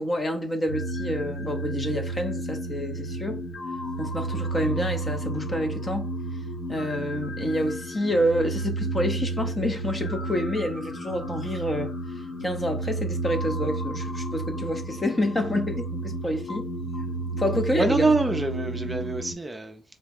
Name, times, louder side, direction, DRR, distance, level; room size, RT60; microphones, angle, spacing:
voice 1, 0.0-3.4 4.0-6.1 6.7-11.9 12.4-16.7 17.4-18.1, equal, 25° left, 0.8 m, -28 dB
sound 1, 0.7-19.3, right 2 dB, 55° left, 1.3 m, -32 dB
voice 2, 17.7-19.8, right 3 dB, 15° right, 0.6 m, -25 dB
4.0 x 2.2 x 3.5 m
cardioid pair, 90°, 0 cm